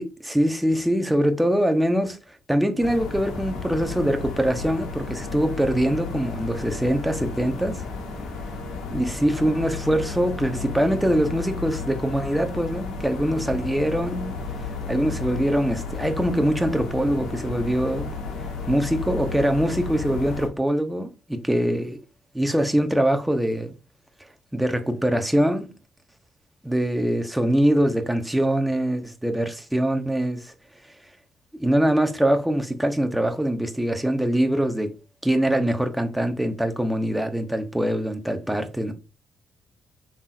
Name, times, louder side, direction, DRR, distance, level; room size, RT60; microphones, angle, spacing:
voice 1, 0.0-2.2 2.5-7.8 8.9-14.4 14.9-18.1 18.7-22.0 22.3-23.7 24.5-25.7 26.6-30.5 31.6-34.9 35.2-38.9, right 1 dB, 5° right, 0.9 m, -23 dB
sound 1, 2.8-20.5, left 4 dB, 85° left, 1.1 m, -33 dB
5.8 x 3.5 x 2.5 m
cardioid pair, 90°, 0 cm